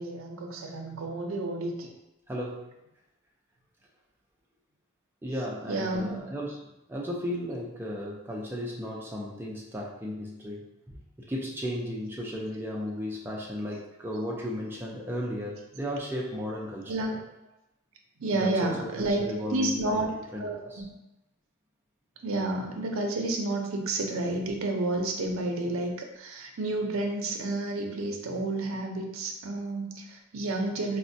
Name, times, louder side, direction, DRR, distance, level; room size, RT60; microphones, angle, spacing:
voice 1, 0.0-1.9 5.7-6.2 16.9-17.1 18.2-19.2 19.5-20.1 20.4-20.9 22.2-31.0, right 2 dB, 75° right, 2 dB, 0.5 m, -30 dB
voice 2, 2.3-2.7 5.2-6.6 6.9-16.9 18.3-18.7 19.0-20.0 20.3-20.8, equal, 10° right, -3 dB, 0.4 m, -35 dB
4.1 x 2.1 x 2.6 m, 0.92 s
head